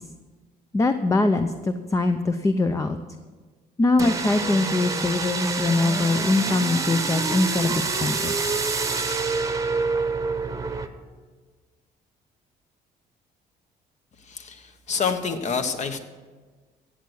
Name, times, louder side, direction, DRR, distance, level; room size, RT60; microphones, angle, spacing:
voice 1, 0.7-3.0 3.8-8.3, left 2 dB, 20° left, 8 dB, 0.6 m, -22 dB
sound 1, 4.0-10.9, right 4 dB, 20° right, 1.0 m, -26 dB
voice 2, 14.3-16.0, left 5 dB, 45° left, 7 dB, 1.3 m, -27 dB
15.0 x 8.3 x 6.4 m, 1.4 s
cardioid pair, 110°, 17 cm